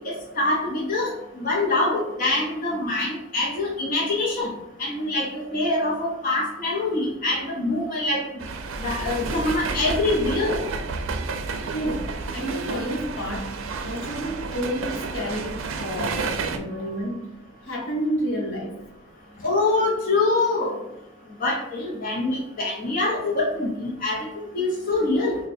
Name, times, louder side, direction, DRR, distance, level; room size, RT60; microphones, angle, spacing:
voice 1, 0.0-1.1 1.4-4.5 4.8-8.2 8.8-10.6 19.4-20.8 21.4-25.4, left 2 dB, 45° left, -3 dB, 0.7 m, -24 dB
sound 1, 8.4-16.6, right 4 dB, 75° right, 0.4 m, -31 dB
voice 2, 11.7-13.5 13.8-17.3 17.6-18.8, equal, 75° left, -1 dB, 1.0 m, -30 dB
3.2 x 2.2 x 4.2 m, 0.89 s
head